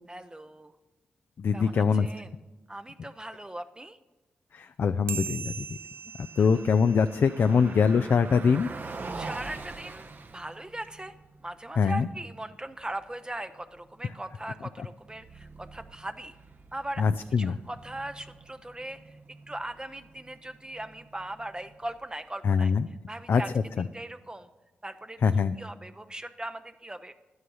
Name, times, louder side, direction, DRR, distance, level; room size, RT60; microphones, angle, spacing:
voice 1, 0.1-0.7 1.5-2.3 2.7-4.0 6.4-6.6 9.1-11.1 11.4-16.4 16.7-17.0 17.4-19.2 19.5-23.5 23.8-24.5 24.8-25.2 25.6-27.1, right 1 dB, 20° right, 8 dB, 0.7 m, -39 dB
voice 2, 1.4-2.1 4.5-5.7 6.2-8.7 11.8-12.1 14.8-14.9 17.0-17.6 22.4-22.9 23.3-23.4 23.8-23.9 25.2-25.6, left 5 dB, 60° left, 10 dB, 0.4 m, -23 dB
sound 1, 5.1-7.9, right 8 dB, 75° right, 0.3 m, -40 dB
Car passing by, 6.2-22.3, right 3 dB, 50° right, 1.0 m, -46 dB
11.0 x 9.6 x 5.5 m, 1.1 s
supercardioid pair, 45°, 4 cm